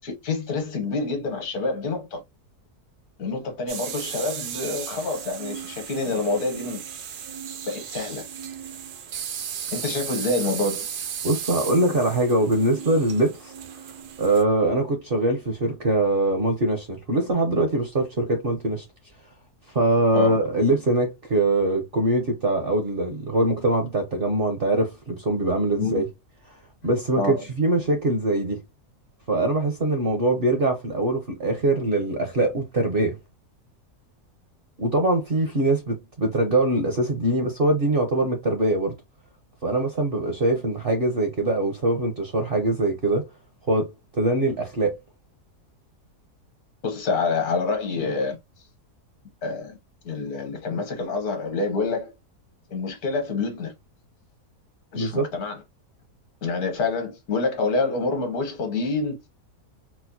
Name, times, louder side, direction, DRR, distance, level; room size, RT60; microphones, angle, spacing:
voice 1, 0.0-2.2 3.2-6.8 7.7-8.2 9.7-10.9 20.1-20.3 25.8-26.0 27.2-27.4 46.8-48.4 49.4-49.8 50.0-52.1 52.7-53.7 54.9-55.6 56.4-59.2, left 3 dB, 75° left, 1.5 m, -27 dB
sound 1, 3.7-14.4, right 8 dB, 75° right, 1.2 m, -35 dB
voice 2, 11.2-13.5 14.2-18.8 19.7-26.1 26.5-26.6 26.8-28.6 29.3-33.2 34.8-38.9 39.6-43.2 43.7-44.9 54.9-55.3, right 2 dB, 50° right, 0.7 m, -23 dB
4.3 x 2.1 x 2.6 m
omnidirectional pair, 1.7 m